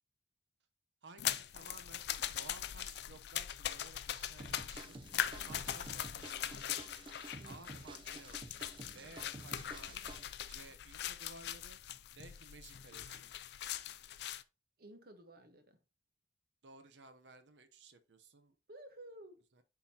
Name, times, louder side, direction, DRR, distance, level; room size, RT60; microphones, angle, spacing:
voice 1, 1.0-5.0 5.4-6.9 7.4-8.4 8.9-10.0 10.4-11.8 12.1-13.3 16.6-18.6 19.5-19.6, right 3 dB, 90° right, 0.8 m, -56 dB
sound 1, 1.2-14.4, left 11 dB, 65° left, 0.4 m, -41 dB
sound 2, 4.4-10.2, right 2 dB, 30° right, 0.6 m, -51 dB
voice 2, 7.4-7.7 14.8-15.8 18.7-19.4, right 1 dB, 60° right, 1.1 m, -54 dB
10.5 x 3.9 x 2.9 m
head